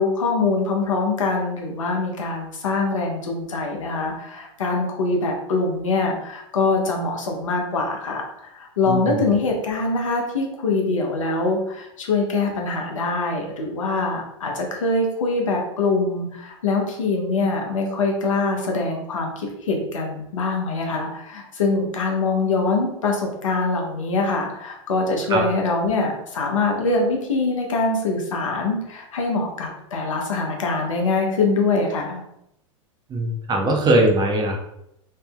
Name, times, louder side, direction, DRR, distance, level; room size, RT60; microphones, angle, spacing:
voice 1, 0.0-32.2, left 3 dB, 80° left, 1 dB, 0.8 m, -23 dB
voice 2, 8.9-9.2 25.3-25.4 33.1-34.6, right 1 dB, 25° right, 2 dB, 0.7 m, -20 dB
3.5 x 2.7 x 2.2 m, 0.79 s
hypercardioid pair, 95°, 17 cm